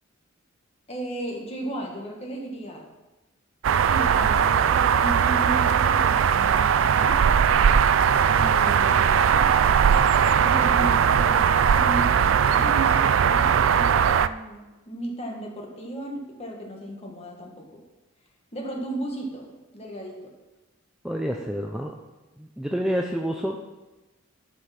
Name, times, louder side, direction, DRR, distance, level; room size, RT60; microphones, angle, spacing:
voice 1, 0.9-2.9 3.8-7.3 8.3-9.7 10.4-17.8 18.5-20.3, right 1 dB, 30° left, 0 dB, 1.7 m, -35 dB
sound 1, 3.6-14.3, right 7 dB, 65° right, 0.3 m, -19 dB
voice 2, 21.0-21.9 22.4-23.6, equal, 5° right, 1 dB, 0.5 m, -28 dB
11.5 x 5.1 x 5.9 m, 1.1 s
head